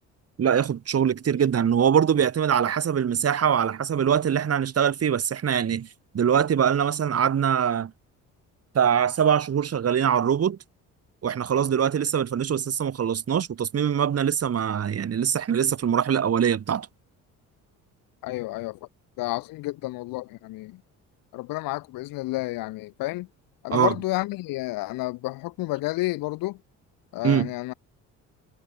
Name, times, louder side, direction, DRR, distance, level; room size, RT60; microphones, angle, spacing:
voice 1, 0.4-5.9 6.1-7.9 8.7-10.6 11.2-16.9 23.7-23.9 27.2-27.5, right 8 dB, 45° right, 4.1 m, -23 dB
voice 2, 18.2-18.8 19.2-20.8 21.3-23.3 23.6-26.6 27.1-27.7, left 19 dB, 85° left, 1.7 m, -30 dB
cardioid pair, 95°, 33 cm